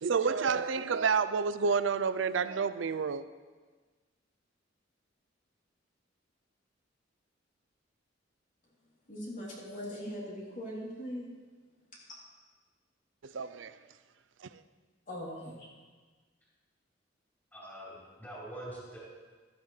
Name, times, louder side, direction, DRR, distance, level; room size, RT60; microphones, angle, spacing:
voice 1, 0.0-3.2 13.2-13.7, right 5 dB, 85° right, 0.5 m, -29 dB
voice 2, 9.1-11.3 12.0-12.1 15.1-15.7, equal, 45° left, 3.4 m, -40 dB
voice 3, 17.5-19.0, right 1 dB, 10° left, 4.2 m, -44 dB
14.0 x 13.0 x 3.3 m
head